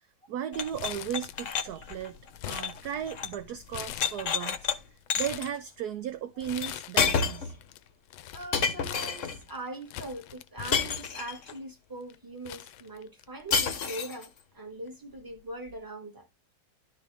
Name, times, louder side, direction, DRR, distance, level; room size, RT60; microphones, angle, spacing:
voice 1, 0.3-2.2 2.4-4.7 5.1-7.6, right 9 dB, 70° right, 0.9 m, -36 dB
sound 1, 0.5-3.4 3.7-4.8 5.1-5.5 6.6-6.7 7.0-7.5 8.5-9.4 10.7-11.5 13.5-14.3, left 6 dB, 45° left, 1.1 m, -30 dB
Crumpling crinkling, 0.8-1.8 2.0-3.3 3.7-4.6 5.0-5.6 6.4-7.2 7.5-11.5 12.1-12.2 12.5-13.5 13.8-13.9 14.9-15.1, left 13 dB, 80° left, 1.4 m, -42 dB
voice 2, 8.3-16.3, right 1 dB, 10° right, 1.9 m, -41 dB
12.5 x 4.5 x 3.5 m
omnidirectional pair, 2.2 m